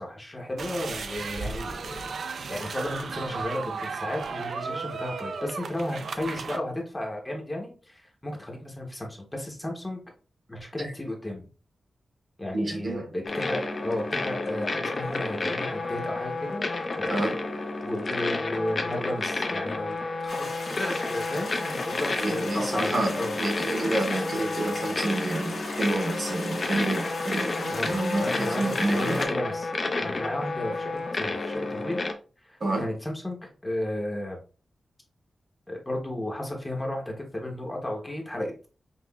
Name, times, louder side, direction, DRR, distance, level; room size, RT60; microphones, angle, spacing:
voice 1, 0.0-2.1 2.5-10.0 10.5-11.4 12.4-16.7 17.0-17.2 17.8-20.4 20.7-23.3 27.7-29.7 30.0-32.0 32.4-34.4 35.7-38.5, left 1 dB, 15° left, 0.8 m, -33 dB
sound 1, 0.6-6.6, right 4 dB, 65° right, 0.4 m, -35 dB
voice 2, 12.5-13.0 17.1-17.3 22.2-29.2 32.6-32.9, right 2 dB, 40° right, 0.8 m, -29 dB
sound 2, 13.3-32.1, left 3 dB, 35° left, 0.5 m, -31 dB
sound 3, 20.3-29.3, left 2 dB, 65° left, 1.3 m, -38 dB
5.4 x 2.4 x 2.3 m
wide cardioid pair, 170°, 0 cm